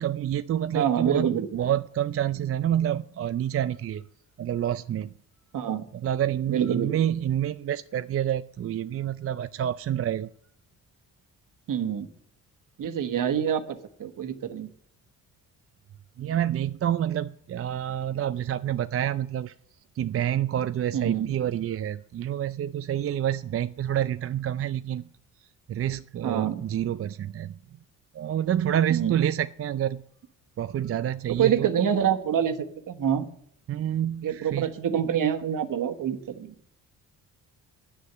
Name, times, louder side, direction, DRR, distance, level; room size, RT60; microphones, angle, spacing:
voice 1, 0.0-4.0 4.4-5.1 5.9-10.3 16.2-19.5 20.0-25.1 25.7-27.6 28.1-30.0 30.6-31.7 33.7-34.7, right 10 dB, 40° right, 13 dB, 0.4 m, -28 dB
voice 2, 0.7-1.6 5.5-5.8 6.5-7.0 11.7-12.1 12.8-14.7 20.9-21.3 26.2-26.6 28.9-29.1 31.4-33.3 34.2-36.5, right 9 dB, 60° right, 8 dB, 1.3 m, -26 dB
9.7 x 6.6 x 8.5 m, 0.66 s
cardioid pair, 70°, 37 cm